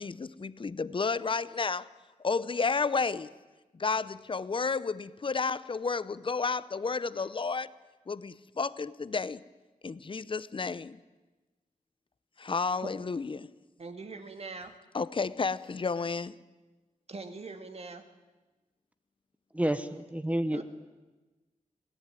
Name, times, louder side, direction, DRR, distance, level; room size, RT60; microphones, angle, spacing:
voice 1, 0.0-1.8 2.2-3.3 3.8-7.7 8.1-9.4 9.8-10.9 12.5-13.5 14.9-16.3, left 4 dB, 40° left, 0.7 m, -31 dB
voice 2, 13.8-14.7 17.1-18.0 20.5-20.6, right 3 dB, 45° right, 2.3 m, -41 dB
voice 3, 19.5-20.6, right 1 dB, 10° right, 1.1 m, -29 dB
25.5 x 17.5 x 9.1 m
wide cardioid pair, 125°, 14 cm